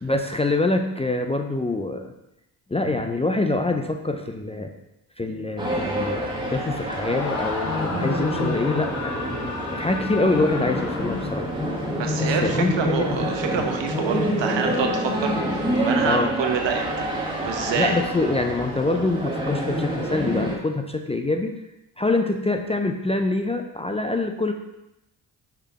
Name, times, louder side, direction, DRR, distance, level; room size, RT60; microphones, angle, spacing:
voice 1, 0.0-2.1 2.7-4.7 5.2-9.3 9.7-11.5 12.2-13.3 16.1-16.3 17.8-21.5 22.0-24.5, left 2 dB, 15° left, 4 dB, 0.5 m, -25 dB
sound 1, 5.6-20.6, equal, 10° right, 1.7 m, -27 dB
Screaming, 6.8-11.7, left 4 dB, 40° left, 0.8 m, -34 dB
voice 2, 12.0-17.1 17.4-18.0, right 6 dB, 70° right, 4 dB, 1.1 m, -27 dB
5.8 x 3.4 x 4.8 m, 0.88 s
supercardioid pair, 65°, 46 cm